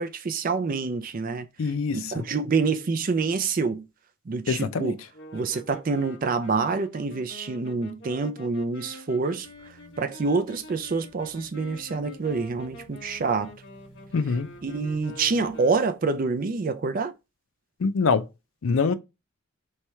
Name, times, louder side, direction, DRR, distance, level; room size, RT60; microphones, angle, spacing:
voice 1, 0.0-1.5 1.9-3.8 4.3-5.0 5.3-9.5 10.0-13.5 14.6-17.1, right 4 dB, 40° right, 0.4 m, -27 dB
voice 2, 1.6-2.2 4.5-5.0 14.1-14.5 17.8-18.2 18.6-18.9, left 5 dB, 75° left, 0.5 m, -24 dB
sound 1, 5.1-16.1, left 1 dB, 55° left, 1.2 m, -46 dB
sound 2, 9.4-15.9, right 1 dB, 40° left, 1.8 m, -54 dB
3.5 x 3.2 x 4.3 m
head